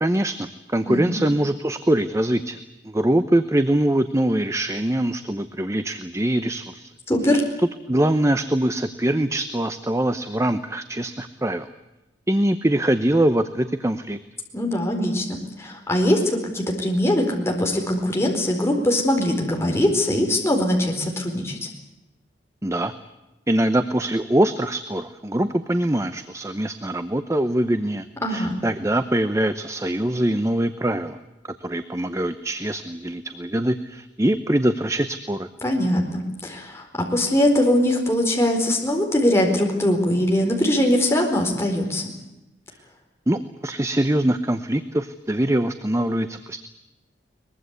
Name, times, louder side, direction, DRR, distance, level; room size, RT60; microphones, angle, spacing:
voice 1, 0.0-2.6 2.8-6.9 7.3-7.4 7.9-11.7 12.3-14.2 22.6-22.9 23.5-28.0 28.3-31.2 31.6-35.5 43.3-46.7, right 1 dB, 15° right, 10 dB, 0.8 m, -23 dB
voice 2, 0.8-1.2 7.1-7.4 14.5-21.7 28.2-28.6 35.6-36.8 37.1-42.1, left 1 dB, 15° left, 1 dB, 4.4 m, -21 dB
23.0 x 21.0 x 8.2 m, 1.0 s
head